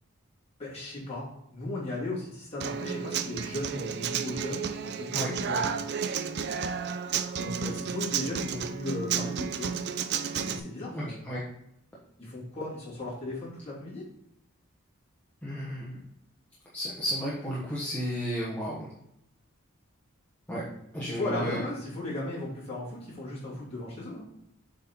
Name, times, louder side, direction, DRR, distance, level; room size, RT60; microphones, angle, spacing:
voice 1, 0.6-5.7 7.3-9.7 10.3-11.2 12.2-14.0 21.1-24.3, left 2 dB, 30° left, -7 dB, 2.9 m, -36 dB
Human voice / Acoustic guitar, 2.6-10.6, right 7 dB, 50° right, 0.4 m, -32 dB
voice 2, 10.9-11.4 15.4-16.0 16.7-18.9 20.5-20.6 20.9-21.6, equal, 5° left, -7 dB, 1.1 m, -33 dB
7.7 x 4.4 x 3.7 m, 0.77 s
head